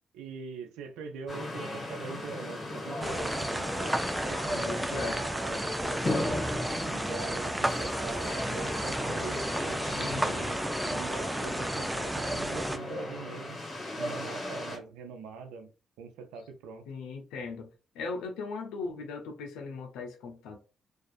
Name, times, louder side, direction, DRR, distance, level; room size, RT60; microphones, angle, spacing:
voice 1, 0.1-4.0 4.3-6.3 6.9-13.6 14.0-15.7 16.0-16.8, right 5 dB, 85° right, 0.4 m, -43 dB
sound 1, 1.3-14.8, left 1 dB, 45° left, 1.5 m, -36 dB
sound 2, 3.0-12.8, right 1 dB, 10° right, 0.4 m, -33 dB
voice 2, 4.6-5.2 9.9-10.5 16.9-17.7 17.9-20.6, left 4 dB, 85° left, 0.5 m, -38 dB
2.4 x 2.3 x 2.3 m
supercardioid pair, 50°, 0 cm